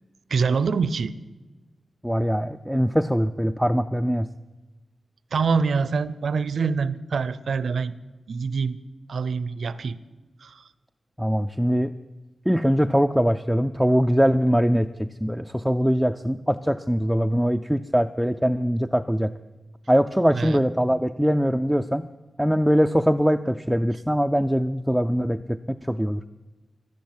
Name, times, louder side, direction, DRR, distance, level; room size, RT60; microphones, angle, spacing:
voice 1, 0.3-1.1 5.3-7.9 8.3-8.8 9.1-10.0 10.4-10.6 20.3-20.6, right 5 dB, 75° right, 17 dB, 0.6 m, -25 dB
voice 2, 2.0-4.3 11.2-11.9 12.5-19.3 19.9-22.1 22.4-26.2, equal, ahead, 7 dB, 0.4 m, -22 dB
12.0 x 11.5 x 9.4 m, 1.2 s
wide cardioid pair, 100°, 0 cm